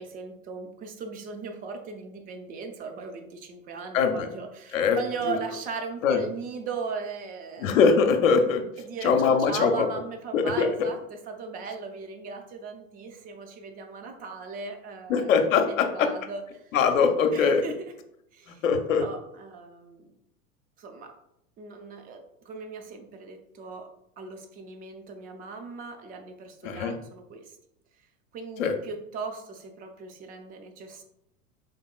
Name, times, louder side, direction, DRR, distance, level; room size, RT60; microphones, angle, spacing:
voice 1, 0.0-7.8 8.8-15.3 15.6-16.6 17.3-17.7 18.3-18.6 19.0-20.1 20.8-21.1 21.6-23.9 24.2-27.6 28.3-31.0, right 4 dB, 20° right, 5 dB, 0.4 m, -38 dB
voice 2, 3.9-4.3 4.7-5.0 5.3-5.4 6.0-6.2 7.6-8.6 9.0-9.9 10.3-10.9 15.1-16.1 16.7-17.6 18.6-19.0 26.6-27.0 28.6-28.7, left 5 dB, 70° left, 6 dB, 0.7 m, -22 dB
3.9 x 3.5 x 2.3 m, 0.77 s
figure-of-eight pair, 90°, 41 cm